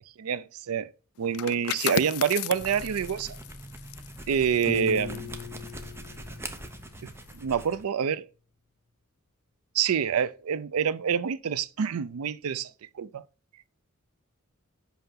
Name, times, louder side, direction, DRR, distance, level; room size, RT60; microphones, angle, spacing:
voice 1, 0.2-0.9 1.2-3.4 4.3-5.3 7.3-8.3 9.7-13.2, right 7 dB, 80° right, 0.4 m, -27 dB
sound 1, 1.2-6.7 7.1-7.4, left 12 dB, 85° left, 0.3 m, -36 dB
sound 2, 2.5-7.8, right 1 dB, 10° right, 0.8 m, -43 dB
Piano, 4.7-7.6, left 5 dB, 35° left, 1.2 m, -39 dB
5.7 x 5.5 x 5.6 m
head